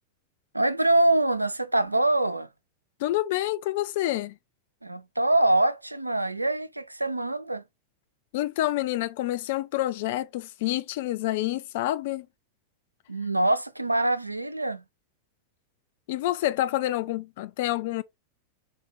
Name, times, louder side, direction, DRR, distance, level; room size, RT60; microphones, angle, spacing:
voice 1, 0.5-2.5 4.8-7.6 13.1-14.8, right 2 dB, 85° right, 0.3 m, -24 dB
voice 2, 3.0-4.4 8.3-12.3 16.1-18.0, left 15 dB, 50° left, 0.4 m, -28 dB
4.2 x 2.2 x 3.4 m
figure-of-eight pair, 90°, 0 cm